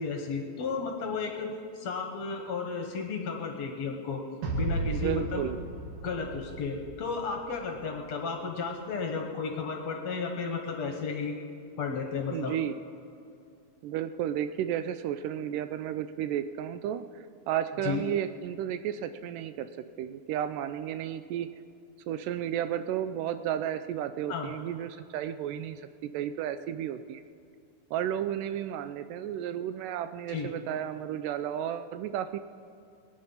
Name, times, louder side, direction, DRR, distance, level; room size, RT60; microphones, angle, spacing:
voice 1, 0.0-4.2 4.6-5.5 6.0-11.3 11.8-12.5 17.8-18.0 24.3-24.5 30.3-30.5, left 5 dB, 60° left, 2 dB, 2.1 m, -33 dB
sound 1, 4.4-7.7, right 2 dB, 65° right, 3.3 m, -35 dB
voice 2, 4.9-5.6 12.3-12.7 13.8-19.7 20.0-21.5 22.1-27.2 27.9-32.4, right 10 dB, 80° right, 11 dB, 2.0 m, -33 dB
22.0 x 9.7 x 5.6 m, 2.4 s
omnidirectional pair, 3.9 m